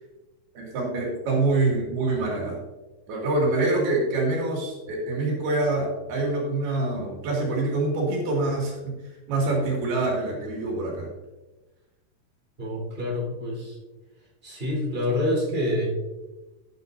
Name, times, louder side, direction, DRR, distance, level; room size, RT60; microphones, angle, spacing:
voice 1, 0.6-2.6 3.1-8.9 9.3-11.1, right 2 dB, 80° right, -2 dB, 4.4 m, -25 dB
voice 2, 12.6-13.8 14.4-16.0, left 1 dB, 15° right, -3 dB, 3.9 m, -27 dB
14.5 x 9.2 x 2.7 m, 1.1 s
omnidirectional pair, 4.4 m